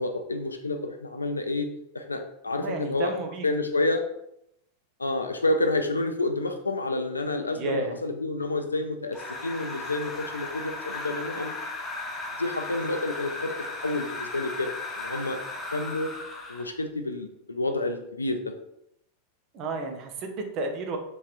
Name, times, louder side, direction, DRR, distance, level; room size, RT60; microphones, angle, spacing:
voice 1, 0.0-1.7 1.9-3.1 3.4-4.0 5.0-11.5 12.4-13.6 13.8-14.7 15.0-15.4 15.7-16.1 16.5-18.4, left 2 dB, 80° left, 6 dB, 0.3 m, -29 dB
voice 2, 2.6-3.5 7.5-8.0 19.5-21.0, right 2 dB, 40° right, 4 dB, 0.5 m, -31 dB
sound 1, 9.1-16.8, left 2 dB, 15° left, 0.5 m, -36 dB
3.0 x 2.8 x 2.4 m, 0.77 s
figure-of-eight pair, 90°, 0 cm